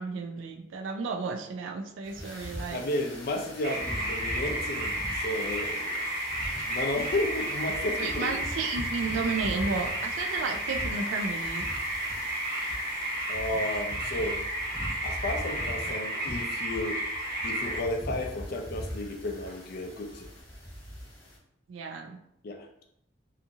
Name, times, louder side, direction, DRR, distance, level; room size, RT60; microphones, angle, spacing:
voice 1, 0.0-2.8 8.0-11.7 21.7-22.2, right 4 dB, 75° right, 5 dB, 0.3 m, -33 dB
sound 1, 2.0-21.4, equal, 20° left, 0.8 m, -41 dB
voice 2, 2.7-5.9 6.7-8.5 13.3-14.4 15.0-17.0 17.4-20.3 22.4-22.8, left 1 dB, 50° left, 5 dB, 0.4 m, -33 dB
sound 2, 3.6-17.8, right 1 dB, 50° right, 0.9 m, -32 dB
2.7 x 2.4 x 2.6 m, 0.75 s
head